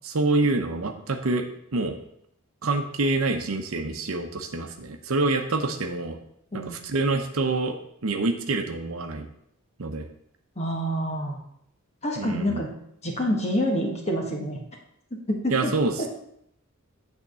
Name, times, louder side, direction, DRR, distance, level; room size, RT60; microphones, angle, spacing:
voice 1, 0.0-2.0 2.6-6.2 6.5-9.3 9.8-10.1 12.2-12.6 15.5-16.1, right 3 dB, 75° right, 6 dB, 0.8 m, -26 dB
voice 2, 10.6-11.4 12.0-12.7 13.0-14.6 15.1-16.1, equal, 30° left, 1 dB, 1.4 m, -27 dB
8.8 x 3.6 x 6.8 m, 0.75 s
head